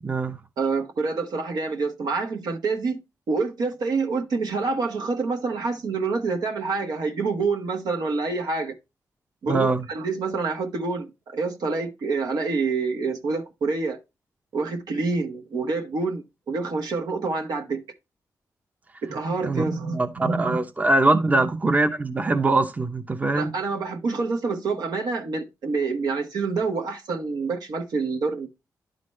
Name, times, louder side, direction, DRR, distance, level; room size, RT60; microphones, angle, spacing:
voice 1, 0.0-0.4 9.5-9.8 19.4-19.6 19.9-23.5, right 2 dB, 20° right, 0.7 m, -22 dB
voice 2, 0.6-3.0 3.3-8.7 9.4-14.0 14.5-17.8 19.0-20.6 21.3-21.4 23.3-28.5, right 4 dB, 75° right, 1.3 m, -27 dB
11.0 x 4.0 x 3.1 m
cardioid pair, 75°, 7 cm